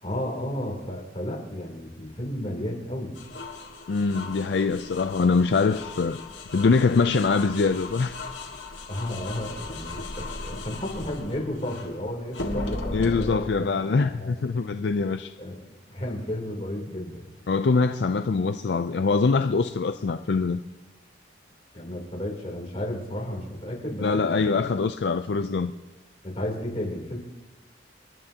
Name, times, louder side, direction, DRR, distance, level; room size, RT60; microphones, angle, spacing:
voice 1, 0.0-3.2 8.9-14.4 15.4-15.6 15.9-17.3 21.7-24.4 26.2-27.2, left 1 dB, 30° left, 3.2 m, -33 dB
sound 1, 3.2-11.9 12.3-13.4, left 2 dB, 85° left, 1.8 m, -37 dB
voice 2, 3.9-6.2 6.5-8.2 12.9-15.3 17.5-20.6 24.0-25.7, left 4 dB, 65° left, 0.4 m, -23 dB
28.5 x 11.0 x 2.9 m
head